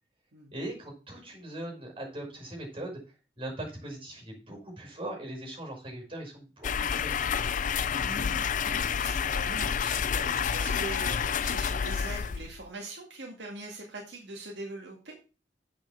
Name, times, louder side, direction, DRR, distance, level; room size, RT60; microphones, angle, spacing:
voice 1, 0.5-3.0 3.4-7.7, right 1 dB, 30° right, 1 dB, 5.7 m, -40 dB
sound 1, 6.6-12.7, left 7 dB, 45° left, 0.4 m, -29 dB
voice 2, 8.0-15.1, right 2 dB, 70° right, -1 dB, 2.3 m, -42 dB
8.4 x 6.3 x 7.2 m, 0.34 s
head